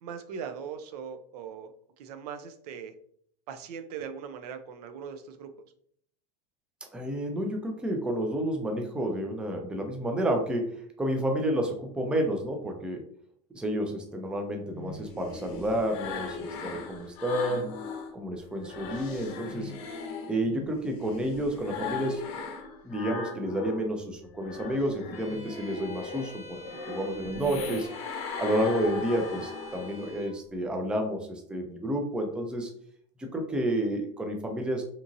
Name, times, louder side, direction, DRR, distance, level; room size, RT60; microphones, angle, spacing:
voice 1, 0.0-1.7 2.0-2.9 3.5-5.5, right 7 dB, 80° right, 9 dB, 0.4 m, -40 dB
voice 2, 6.9-13.0 13.5-17.7 18.1-19.7 20.3-22.2 22.8-26.6 26.9-27.9 28.4-32.7 33.2-34.8, right 1 dB, 5° right, 3 dB, 0.3 m, -30 dB
sound 1, 14.7-18.1 18.5-23.9 24.2-30.1, left 4 dB, 55° left, 0.6 m, -38 dB
Bowed string instrument, 25.1-30.4, left 1 dB, 10° left, 1.0 m, -47 dB
2.9 x 2.5 x 2.5 m, 0.63 s
supercardioid pair, 140°, 20 cm